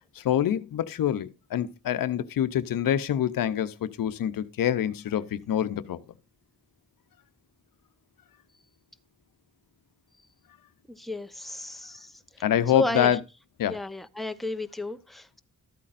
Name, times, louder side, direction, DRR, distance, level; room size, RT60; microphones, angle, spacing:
voice 1, 0.2-6.0 12.4-13.2 13.6-13.8, left 10 dB, 80° left, 0.7 m, -26 dB
voice 2, 10.9-12.4 12.7-13.2 13.7-15.4, left 2 dB, ahead, 0.8 m, -33 dB
13.5 x 8.4 x 2.5 m
cardioid pair, 60°, 33 cm